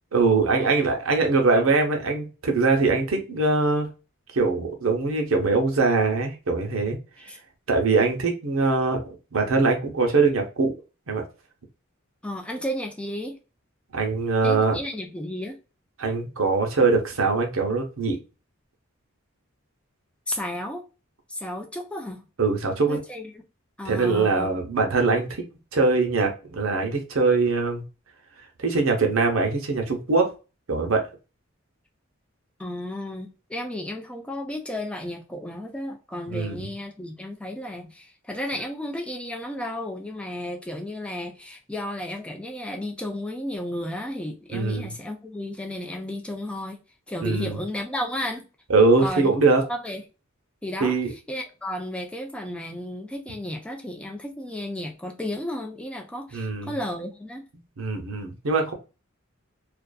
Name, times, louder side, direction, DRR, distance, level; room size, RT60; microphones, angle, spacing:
voice 1, 0.1-3.9 4.3-7.0 7.7-10.7 11.1-11.2 13.9-14.8 16.0-18.2 22.4-23.0 23.8-25.4 25.7-27.8 28.6-30.3 30.7-31.1 36.3-36.7 44.5-44.9 47.2-47.6 48.7-49.6 50.8-51.1 56.3-56.7 57.8-58.7, right 3 dB, 80° right, 0.7 m, -22 dB
voice 2, 12.2-13.4 14.4-15.6 20.3-20.8 21.3-22.3 22.9-23.4 23.8-24.6 32.6-46.8 47.1-48.5 49.0-49.3 49.7-50.0 50.6-50.9 51.3-57.4, left 1 dB, 5° left, 0.4 m, -33 dB
2.5 x 2.4 x 2.2 m
head